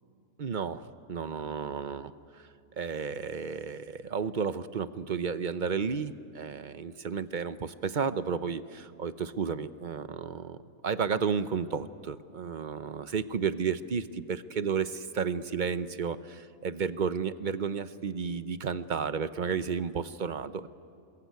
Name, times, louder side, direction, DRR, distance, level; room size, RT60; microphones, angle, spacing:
voice 1, 0.4-2.5 2.8-10.6 10.8-20.7, right 6 dB, 45° right, 13 dB, 0.7 m, -32 dB
27.0 x 21.5 x 9.4 m, 2.5 s
omnidirectional pair, 1.5 m